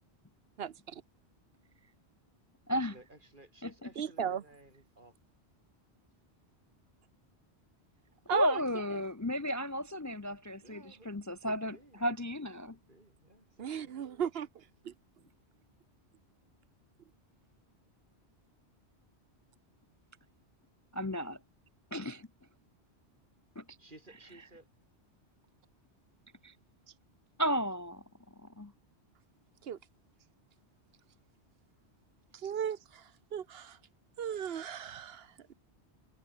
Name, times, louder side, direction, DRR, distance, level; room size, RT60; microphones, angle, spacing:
voice 1, 0.6-1.0 4.0-4.4 8.3-8.6 13.6-14.9 29.6-29.8 32.3-33.8 34.2-35.5, right 8 dB, 65° right, 1.0 m, -36 dB
voice 2, 2.7-5.1 10.6-11.1 11.4-12.1 12.7-14.0 23.8-24.7, right 2 dB, 45° right, 4.5 m, -57 dB
voice 3, 8.3-11.7 12.0-12.8 20.9-21.4 21.9-22.3 23.6-23.7 26.4-26.5 27.4-28.0 28.6-28.7, equal, 20° left, 0.5 m, -33 dB
omnidirectional pair, 1.1 m